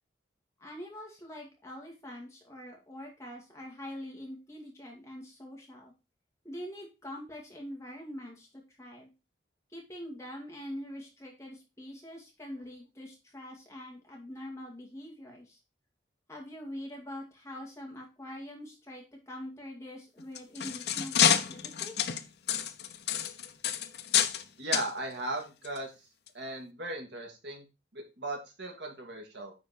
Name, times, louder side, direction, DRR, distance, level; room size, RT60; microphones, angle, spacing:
voice 1, 0.6-5.9 6.4-9.1 9.7-15.6 16.3-22.1, left 1 dB, 15° left, -1 dB, 2.3 m, -44 dB
sound 1, 20.2-24.4 24.7-24.9 25.6-25.8 26.3-26.4, left 9 dB, 60° left, 0.6 m, -28 dB
voice 2, 24.6-26.1 26.3-27.6 27.9-29.5, right 2 dB, 70° right, 1 dB, 2.3 m, -37 dB
9.4 x 4.4 x 4.3 m, 0.28 s
head